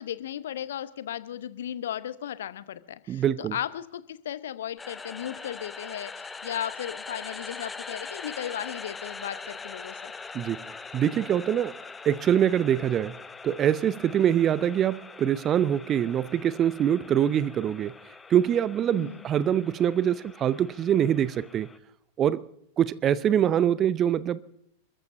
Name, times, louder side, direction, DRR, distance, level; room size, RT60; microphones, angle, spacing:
voice 1, 0.0-10.1 18.9-19.2, left 10 dB, 60° left, 0.7 m, -36 dB
voice 2, 3.1-3.6 10.3-10.6 10.9-11.8 12.1-13.1 13.4-17.9 18.3-21.7 22.2-22.5 22.8-24.5, right 10 dB, 30° right, 0.5 m, -24 dB
sound 1, 4.8-21.8, left 4 dB, 15° left, 0.7 m, -42 dB
29.5 x 14.0 x 2.6 m
figure-of-eight pair, 90°, 0 cm